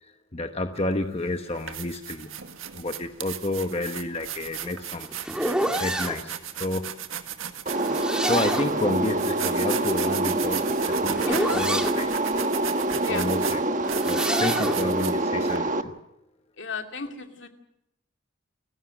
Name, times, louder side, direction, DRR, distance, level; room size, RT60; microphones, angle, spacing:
voice 1, 0.0-2.4 2.7-5.1 5.8-6.9 7.9-12.1 12.9-13.6 14.0-16.0, left 2 dB, 30° left, 7 dB, 1.0 m, -30 dB
sound 1, 0.8-0.9 1.4-15.6, right 9 dB, 80° right, 1.8 m, -36 dB
sound 2, 4.4-6.2 7.7-8.8 10.2-12.0 13.7-14.8, right 1 dB, 5° right, 2.0 m, -28 dB
sound 3, 7.7-15.8, right 2 dB, 40° right, 1.3 m, -26 dB
voice 2, 11.3-12.0 13.0-13.3 16.6-17.5, left 3 dB, 60° left, 5 dB, 2.4 m, -34 dB
29.5 x 16.0 x 6.3 m, 0.87 s
head